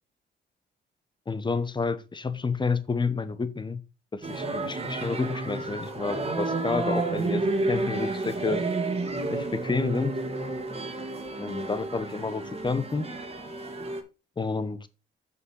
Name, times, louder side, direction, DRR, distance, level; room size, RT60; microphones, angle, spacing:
voice 1, 1.3-3.8 4.1-8.6 9.3-10.2 11.4-13.1 14.4-14.9, left 4 dB, 25° left, 1.1 m, -30 dB
sound 1, 4.2-14.0, right 2 dB, 30° right, 2.1 m, -31 dB
6.9 x 5.7 x 4.7 m
cardioid pair, 90°, 20 cm